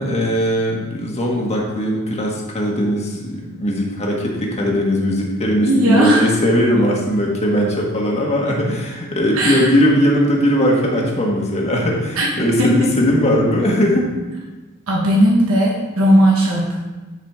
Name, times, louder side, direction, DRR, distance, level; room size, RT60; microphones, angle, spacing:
voice 1, 0.0-14.1, equal, 30° left, -1 dB, 1.5 m, -19 dB
voice 2, 5.6-6.3 9.3-9.7 12.2-12.3 12.6-13.0 14.9-16.8, equal, 75° right, -3 dB, 1.3 m, -16 dB
10.5 x 5.0 x 3.6 m, 1.2 s
head